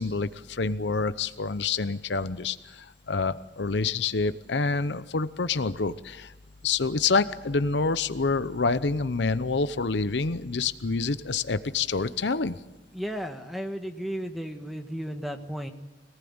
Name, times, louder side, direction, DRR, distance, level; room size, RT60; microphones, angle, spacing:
voice 1, 0.0-6.3 6.6-12.6, left 4 dB, 70° left, 13 dB, 0.8 m, -27 dB
voice 2, 12.9-15.7, equal, ahead, 5 dB, 1.5 m, -34 dB
25.5 x 19.0 x 8.8 m, 1.1 s
head